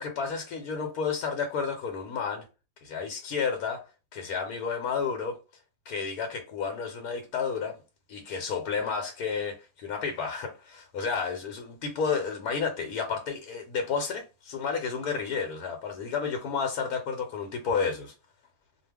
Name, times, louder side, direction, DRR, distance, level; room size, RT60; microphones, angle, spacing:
voice 1, 0.0-2.4 2.8-3.8 4.1-5.4 5.8-7.8 8.1-18.1, left 5 dB, 90° left, 1.1 m, -31 dB
2.3 x 2.3 x 3.3 m
omnidirectional pair, 1.6 m